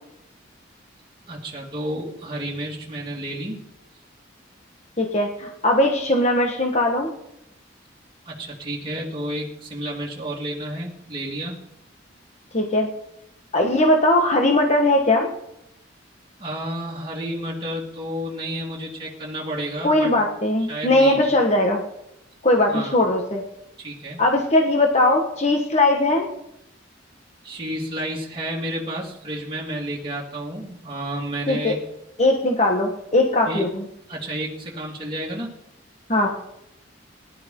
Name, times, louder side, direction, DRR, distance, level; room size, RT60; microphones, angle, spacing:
voice 1, 1.3-3.6 8.3-11.6 16.4-20.1 20.7-21.2 22.7-23.0 23.8-24.2 27.4-31.8 33.5-33.7 34.1-35.5, right 1 dB, 25° right, -4 dB, 2.2 m, -31 dB
voice 2, 5.0-7.1 12.5-12.9 13.5-15.3 19.8-21.8 22.4-23.4 24.2-26.3 31.5-31.8 32.2-33.8 36.1-36.3, left 1 dB, 35° left, 2 dB, 1.5 m, -19 dB
20.5 x 11.5 x 3.8 m, 0.81 s
head